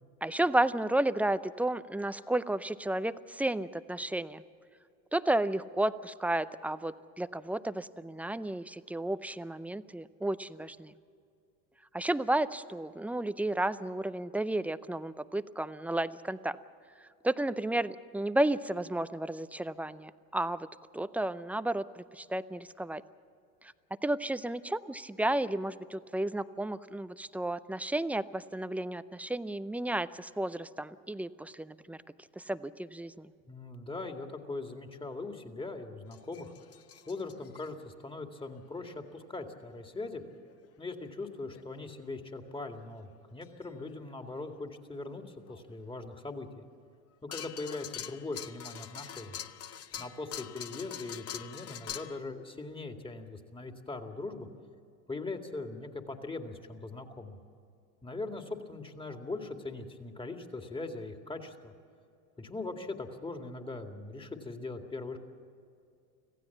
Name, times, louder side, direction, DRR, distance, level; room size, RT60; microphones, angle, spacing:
voice 1, 0.2-4.4 5.1-10.9 11.9-16.6 17.2-20.7 20.9-23.0 24.0-32.0 32.4-33.3, right 1 dB, 5° right, 14 dB, 0.5 m, -32 dB
voice 2, 33.5-36.5 37.1-40.2 40.8-46.6 47.2-49.4 50.0-54.5 55.1-57.4 58.0-61.7 62.4-65.2, left 3 dB, 10° left, 5 dB, 2.2 m, -40 dB
sound 1, 36.1-37.7 38.5-38.6 40.5-40.6 41.5-41.6 43.4-43.6 44.1-44.2 45.5-45.6 47.3-52.2, left 10 dB, 35° left, 0.9 m, -44 dB
25.5 x 15.5 x 7.2 m, 2.4 s
hypercardioid pair, 95°, 42 cm